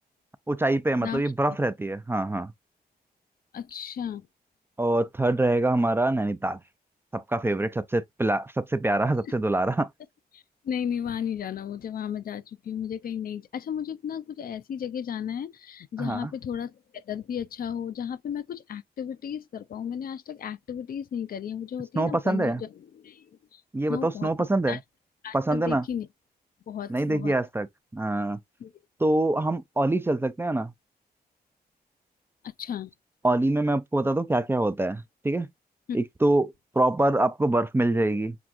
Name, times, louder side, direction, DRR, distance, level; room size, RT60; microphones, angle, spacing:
voice 1, 0.5-2.5 4.8-6.6 7.1-9.9 16.0-16.3 22.0-22.6 23.7-24.8 25.3-25.9 26.9-27.7 27.9-28.4 29.0-30.7 33.2-35.5 35.9-38.4, right 2 dB, 15° right, 0.4 m, -25 dB
voice 2, 3.5-4.3 10.3-22.7 23.0-23.3 23.5-23.6 23.9-24.3 24.7-24.8 25.2-26.1 26.7-27.3 28.6-28.7 32.4-32.9 35.9-36.0, left 8 dB, 65° left, 0.5 m, -34 dB
6.0 x 3.4 x 2.5 m
cardioid pair, 100°, 17 cm